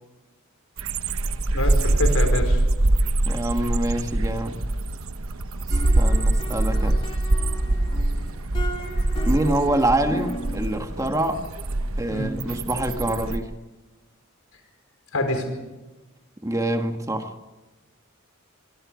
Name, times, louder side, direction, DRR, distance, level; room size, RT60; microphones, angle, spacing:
sound 1, 0.8-13.4, right 2 dB, 75° right, 1.1 m, -24 dB
voice 1, 1.5-2.6 12.1-12.3 15.1-15.5, left 1 dB, 85° left, 6 dB, 4.9 m, -26 dB
voice 2, 3.3-4.6 6.0-7.1 9.3-11.4 12.0-13.5 16.4-17.4, right 1 dB, 15° right, 5 dB, 1.6 m, -25 dB
sound 2, 5.7-10.7, equal, 25° left, 2.9 m, -37 dB
25.0 x 23.5 x 5.1 m, 1.2 s
head